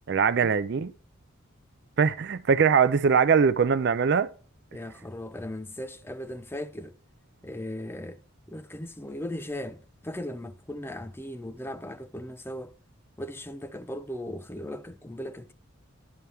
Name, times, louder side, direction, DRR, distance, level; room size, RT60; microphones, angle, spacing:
voice 1, 0.1-0.9 2.0-4.3, right 6 dB, 50° right, 0.4 m, -22 dB
voice 2, 4.7-6.9 7.4-8.2 8.5-12.7 13.2-15.5, left 1 dB, 10° left, 0.5 m, -37 dB
11.0 x 5.7 x 3.4 m
head